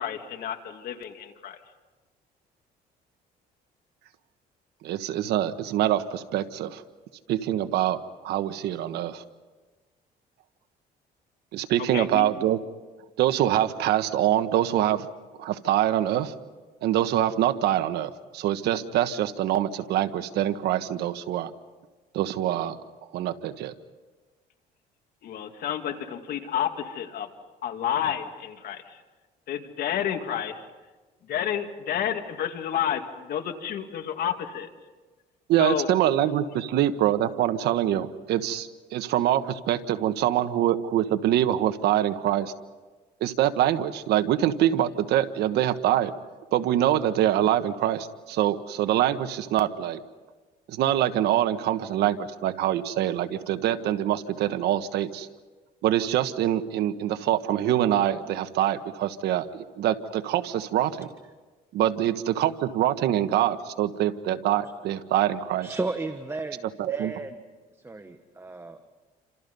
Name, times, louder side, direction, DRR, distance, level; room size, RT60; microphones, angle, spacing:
voice 1, 0.0-1.6 11.9-12.3 25.2-27.3 27.6-29.0 29.5-30.7 31.3-34.7 35.6-35.9, left 9 dB, 65° left, 5 dB, 2.5 m, -30 dB
voice 2, 4.8-6.8 7.3-9.2 11.5-12.6 13.2-15.1 15.4-16.3 16.8-21.5 22.1-22.8 23.1-23.7 35.5-42.5 43.2-46.1 46.5-50.0 50.7-55.3 55.8-61.1 61.7-65.7 66.8-67.1, right 12 dB, 80° right, 9 dB, 1.3 m, -25 dB
voice 3, 65.6-67.4 67.8-68.9, right 3 dB, 15° right, 8 dB, 1.4 m, -34 dB
29.0 x 26.5 x 5.5 m, 1.3 s
cardioid pair, 110°, 17 cm